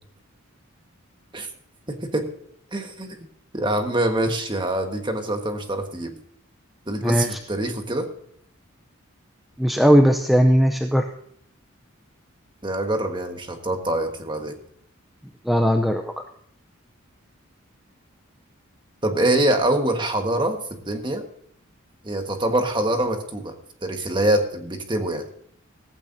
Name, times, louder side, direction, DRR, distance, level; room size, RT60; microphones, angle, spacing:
voice 1, 1.9-2.3 2.7-3.3 3.5-6.1 6.9-8.1 12.6-14.5 19.0-20.6 20.8-21.2 22.0-23.5 23.8-25.2, right 1 dB, 20° right, 5 dB, 1.5 m, -24 dB
voice 2, 7.0-7.4 9.6-11.1 15.5-16.1, equal, ahead, 5 dB, 0.6 m, -18 dB
15.0 x 15.0 x 2.7 m, 0.68 s
head